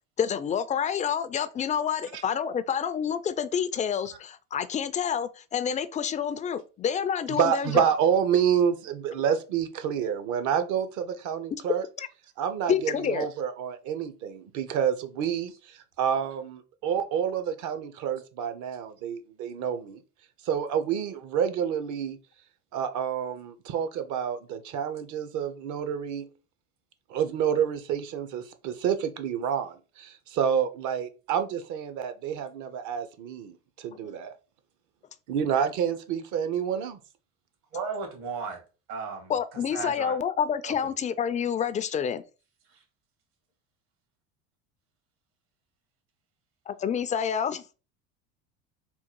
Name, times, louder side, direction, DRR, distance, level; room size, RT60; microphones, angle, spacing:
voice 1, 0.2-7.9 12.0-12.1 12.7-13.3 34.0-34.1 39.3-42.2 46.7-47.7, left 7 dB, 20° left, 0.3 m, -28 dB
voice 2, 7.4-11.8 12.4-20.0 20.4-22.2 22.7-26.3 27.1-34.3 35.3-37.0, right 8 dB, 55° right, 0.7 m, -28 dB
voice 3, 37.7-38.6 38.9-40.2 40.6-40.7 42.7-42.8, right 5 dB, 70° right, 1.9 m, -35 dB
3.7 x 2.3 x 4.4 m
supercardioid pair, 90°, 35 cm